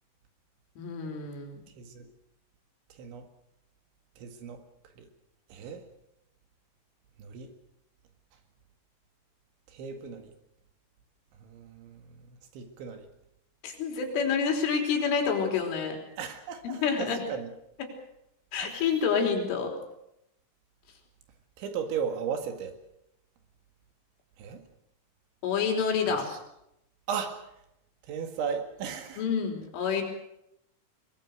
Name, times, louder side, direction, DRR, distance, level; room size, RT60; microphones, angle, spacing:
voice 1, 0.8-1.6 13.6-16.0 16.6-17.2 18.5-19.7 25.4-26.3 29.2-30.0, left 6 dB, 75° left, 2 dB, 6.0 m, -28 dB
voice 2, 4.2-4.6 5.0-5.1 5.5-5.8 7.2-7.5 9.7-10.3 11.4-12.0 12.5-13.1 16.2-17.5 18.6-18.7 21.6-22.7 24.4-24.6 26.1-26.4 27.1-27.4 28.1-29.2, right 7 dB, 70° right, 5 dB, 4.2 m, -36 dB
23.0 x 20.5 x 6.5 m, 0.82 s
omnidirectional pair, 5.7 m